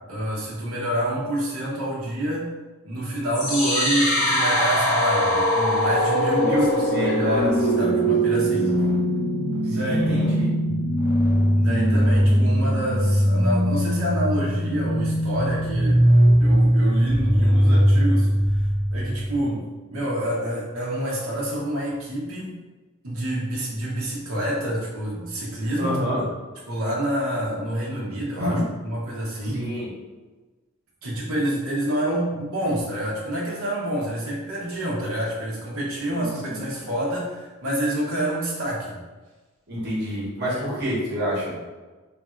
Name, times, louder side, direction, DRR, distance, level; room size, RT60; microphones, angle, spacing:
voice 1, 0.1-2.5 2.8-6.7 7.0-8.8 9.7-10.2 11.6-16.0 16.4-19.6 19.9-22.6 23.0-26.0 26.7-29.6 31.0-39.0 40.4-40.7, right 1 dB, 75° right, -5 dB, 1.0 m, -27 dB
sound 1, 3.3-19.3, equal, 85° left, 1.4 m, -20 dB
voice 2, 6.4-7.4 7.8-8.4 8.9-9.0 9.6-10.5 25.8-26.2 28.4-28.6 29.5-29.9 36.1-36.6 39.7-41.6, equal, 50° right, -6 dB, 1.2 m, -28 dB
3.4 x 2.5 x 4.3 m, 1.2 s
head